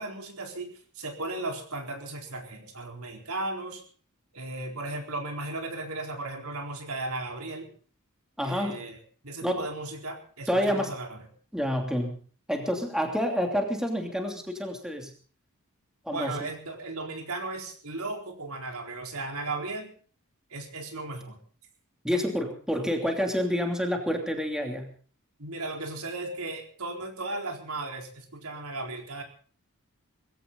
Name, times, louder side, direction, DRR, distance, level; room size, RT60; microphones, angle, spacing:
voice 1, 0.0-3.8 4.3-7.7 8.4-9.0 9.2-11.2 16.1-19.9 20.5-21.4 22.1-22.2 25.4-29.2, right 2 dB, 75° right, 3 dB, 4.3 m, -36 dB
voice 2, 8.4-8.9 9.4-9.7 10.5-11.0 11.5-12.2 12.5-15.1 16.0-16.5 22.0-24.9, equal, 5° right, 3 dB, 2.9 m, -28 dB
21.0 x 16.0 x 4.0 m, 0.42 s
head